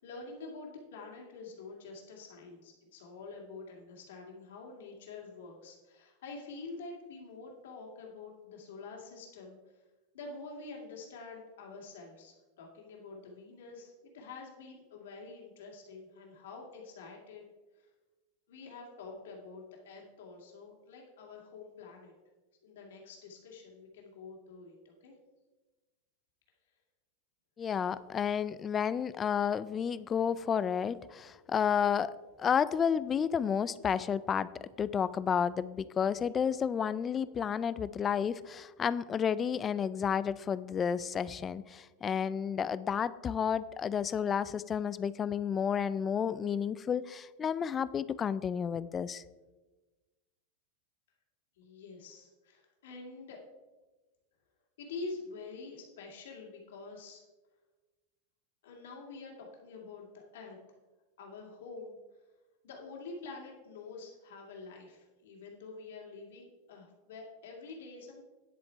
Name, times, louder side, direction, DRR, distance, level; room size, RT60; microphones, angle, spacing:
voice 1, 0.0-9.8 10.1-17.4 17.8-17.9 18.5-22.1 22.6-25.2 51.6-53.4 54.8-57.2 58.6-60.6 61.2-62.0 62.6-68.2, left 3 dB, 80° left, -1 dB, 2.2 m, -47 dB
voice 2, 27.6-32.1 32.4-49.2, left 7 dB, 20° left, 17 dB, 0.3 m, -31 dB
10.0 x 7.7 x 4.5 m, 1.2 s
supercardioid pair, 160°, 0 cm